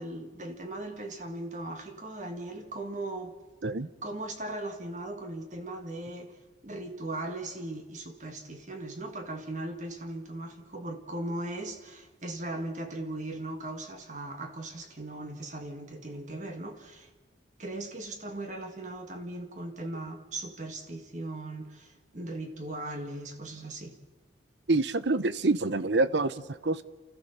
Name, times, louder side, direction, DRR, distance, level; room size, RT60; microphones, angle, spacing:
voice 1, 0.0-3.3 4.0-6.4 6.6-17.1 17.6-24.0, right 2 dB, 40° right, 5 dB, 1.7 m, -38 dB
voice 2, 24.7-26.8, right 2 dB, 70° right, 14 dB, 0.9 m, -26 dB
29.0 x 14.5 x 6.8 m, 1.3 s
head